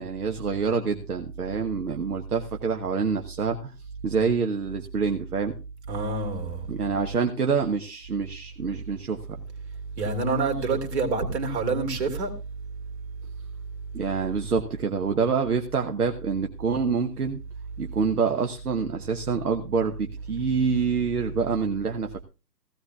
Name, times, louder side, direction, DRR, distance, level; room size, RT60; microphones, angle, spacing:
voice 1, 0.0-3.7 4.0-5.6 6.7-9.2 13.9-17.4 17.8-22.2, right 5 dB, 60° right, 1.1 m, -26 dB
voice 2, 5.9-6.6 10.0-12.3, right 3 dB, 40° right, 2.7 m, -27 dB
16.0 x 16.0 x 2.3 m
figure-of-eight pair, 130°, 50 cm